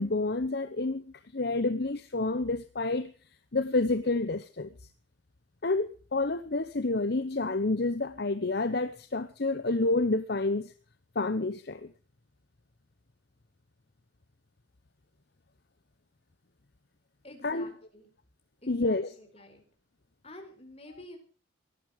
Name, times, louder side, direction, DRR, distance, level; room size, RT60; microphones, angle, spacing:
voice 1, 0.0-3.1 3.5-4.7 5.6-10.7 11.1-11.9 17.4-17.7 18.7-19.1, left 2 dB, 50° left, 0.9 m, -29 dB
voice 2, 17.2-18.1 18.6-19.6 20.2-21.2, left 1 dB, 30° left, 4.6 m, -49 dB
18.0 x 12.5 x 5.1 m
head